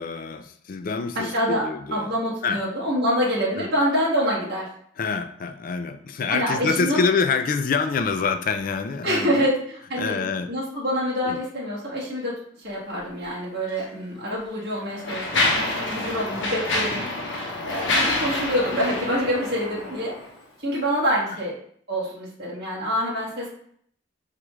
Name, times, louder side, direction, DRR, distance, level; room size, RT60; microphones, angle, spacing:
voice 1, 0.0-2.1 2.4-2.6 3.6-3.7 5.0-9.4 10.0-10.5 11.2-11.4, left 5 dB, 45° left, 8 dB, 0.3 m, -26 dB
voice 2, 1.1-1.6 1.9-4.7 6.3-7.0 9.0-17.0 17.6-20.1 20.6-21.5 21.9-23.5, equal, 55° right, -6 dB, 1.4 m, -26 dB
Mechanisms, 13.7-13.8 14.6-20.3, left 2 dB, 80° left, 0.8 m, -27 dB
4.5 x 2.4 x 3.1 m, 0.64 s
head